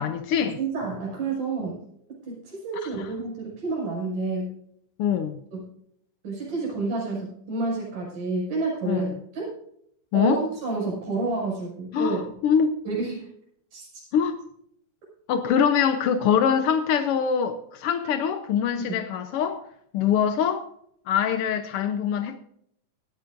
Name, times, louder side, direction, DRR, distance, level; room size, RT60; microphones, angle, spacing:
voice 1, 0.0-0.6 5.0-5.4 8.8-9.1 10.1-10.4 11.9-12.7 14.1-14.4 15.3-19.6 19.9-20.6 21.1-22.4, left 8 dB, 80° left, 1.3 m, -23 dB
voice 2, 0.6-1.8 2.3-4.5 5.5-5.6 6.2-9.5 10.1-12.2 12.9-13.3 13.7-14.0, right 3 dB, 80° right, 7.8 m, -29 dB
18.5 x 13.0 x 2.6 m
omnidirectional pair, 3.7 m